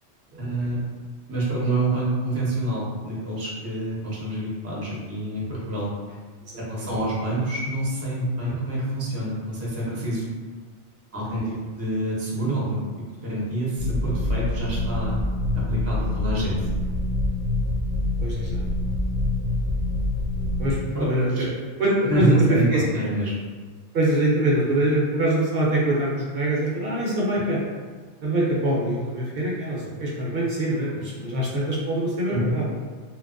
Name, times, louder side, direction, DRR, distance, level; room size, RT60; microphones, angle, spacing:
voice 1, 0.4-0.8 1.3-6.2 6.6-10.2 11.1-11.4 11.7-12.8 13.2-15.2 15.5-16.7 20.9-21.4 22.1-23.3 32.3-32.5, right 2 dB, 20° right, -6 dB, 0.4 m, -27 dB
voice 2, 6.5-6.9 8.4-8.5 11.3-11.5 16.0-16.1 18.2-18.6 20.6-21.5 21.8-22.8 23.9-27.6 28.2-32.7, right 1 dB, 65° right, -5 dB, 0.7 m, -24 dB
sound 1, 13.8-20.7, left 2 dB, 55° left, 0.5 m, -25 dB
2.8 x 2.2 x 2.4 m, 1.5 s
omnidirectional pair, 1.2 m